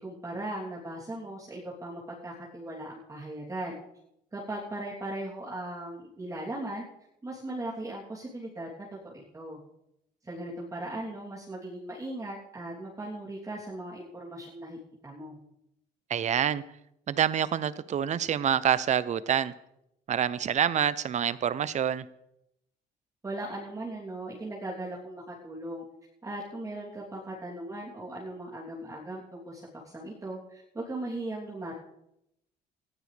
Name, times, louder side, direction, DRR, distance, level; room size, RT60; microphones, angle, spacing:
voice 1, 0.0-3.8 4.3-6.9 7.2-9.6 10.2-15.4 23.2-25.8 26.2-29.6 29.9-31.7, right 1 dB, 20° right, -6 dB, 3.2 m, -38 dB
voice 2, 16.1-16.6 17.1-19.5 20.1-22.0, right 9 dB, 45° right, 17 dB, 0.7 m, -27 dB
18.5 x 15.0 x 3.4 m, 0.82 s
cardioid pair, 110°, 17 cm